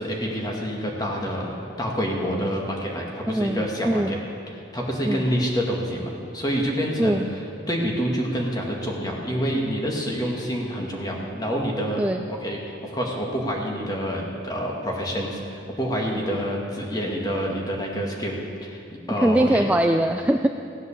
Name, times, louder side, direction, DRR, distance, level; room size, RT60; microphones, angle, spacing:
voice 1, 0.0-4.2 4.7-7.2 7.7-12.0 12.3-18.3 18.6-18.8 19.1-19.7, equal, 20° left, -1 dB, 1.9 m, -27 dB
voice 2, 3.3-4.2 5.0-5.3 7.0-7.3 12.0-12.2 19.2-20.5, right 1 dB, 5° right, 5 dB, 0.3 m, -22 dB
17.0 x 8.2 x 7.2 m, 2.6 s
head